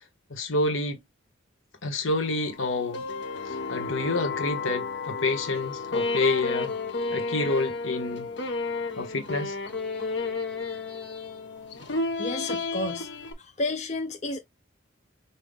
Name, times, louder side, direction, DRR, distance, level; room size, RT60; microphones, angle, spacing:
voice 1, 0.3-1.0 1.8-3.0 3.4-6.7 7.1-8.3 9.0-9.6, left 2 dB, 75° left, 1.2 m, -28 dB
sound 1, 2.1-13.3, left 3 dB, 60° left, 0.8 m, -32 dB
voice 2, 11.9-13.1 13.4-14.4, left 2 dB, 35° left, 0.5 m, -32 dB
5.5 x 2.4 x 3.5 m
head